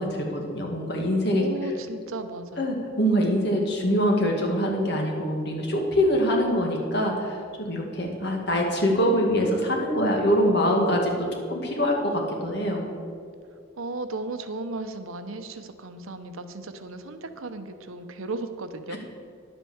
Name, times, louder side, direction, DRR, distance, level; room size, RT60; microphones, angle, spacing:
voice 1, 0.0-1.5 2.6-12.8 18.9-19.0, equal, 55° left, 1 dB, 2.0 m, -24 dB
voice 2, 1.4-2.8 13.8-19.0, right 2 dB, 85° right, 9 dB, 0.9 m, -35 dB
10.5 x 8.1 x 7.2 m, 2.3 s
head